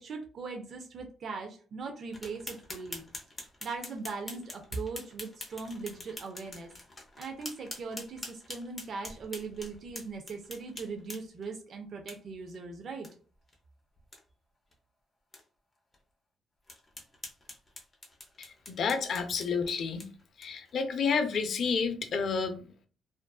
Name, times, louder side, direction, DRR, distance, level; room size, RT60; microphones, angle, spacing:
voice 1, 0.0-3.0 3.6-6.7 7.2-13.1, right 4 dB, 55° right, 4 dB, 0.4 m, -40 dB
sound 1, 2.1-11.5 12.1-12.2 12.5-12.6 13.0-13.1 13.5-13.6 14.0-14.2 14.7-14.8 15.3-15.4 15.9-16.0 16.7-20.7, left 2 dB, 25° left, 0.6 m, -45 dB
voice 2, 18.4-20.0 20.4-22.7, left 5 dB, 60° left, 7 dB, 0.4 m, -30 dB
2.5 x 2.3 x 2.2 m, 0.38 s
cardioid pair, 90°, 0 cm